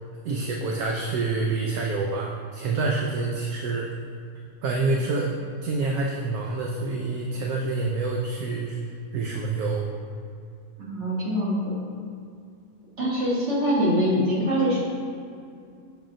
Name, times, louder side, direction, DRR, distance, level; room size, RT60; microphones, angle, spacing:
voice 1, 0.2-3.9 4.6-5.3 5.6-8.8 9.1-9.9, right 3 dB, 75° right, 0 dB, 1.0 m, -27 dB
voice 2, 10.8-11.7 13.0-14.8, equal, 45° right, -7 dB, 1.7 m, -24 dB
6.9 x 5.5 x 2.5 m, 2.4 s
omnidirectional pair, 1.7 m